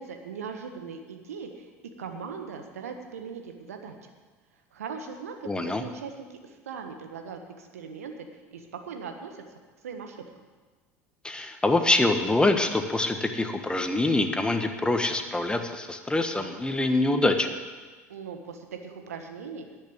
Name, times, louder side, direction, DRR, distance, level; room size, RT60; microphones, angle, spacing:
voice 1, 0.0-1.7 2.0-4.1 4.7-6.1 6.4-9.4 9.8-10.2 18.1-19.7, right 6 dB, 80° right, 5 dB, 1.4 m, -39 dB
voice 2, 5.4-5.8 11.2-17.5, left 2 dB, 10° left, 6 dB, 1.5 m, -25 dB
10.5 x 8.6 x 8.6 m, 1.4 s
figure-of-eight pair, 70°, 8 cm